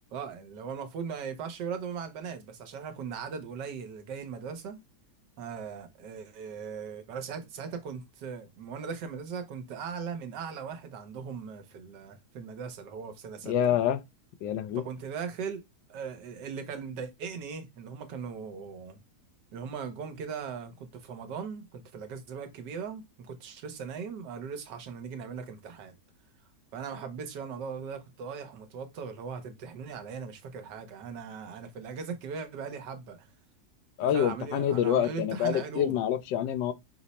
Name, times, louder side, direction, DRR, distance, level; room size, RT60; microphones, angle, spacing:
voice 1, 0.1-4.8 5.4-13.8 14.7-15.6 15.9-19.0 19.5-25.9 26.7-33.3 34.1-36.0, right 6 dB, 75° right, 1.4 m, -39 dB
voice 2, 13.4-14.0 14.4-14.8 34.0-36.7, left 10 dB, 85° left, 1.3 m, -27 dB
5.1 x 2.0 x 4.0 m
omnidirectional pair, 1.9 m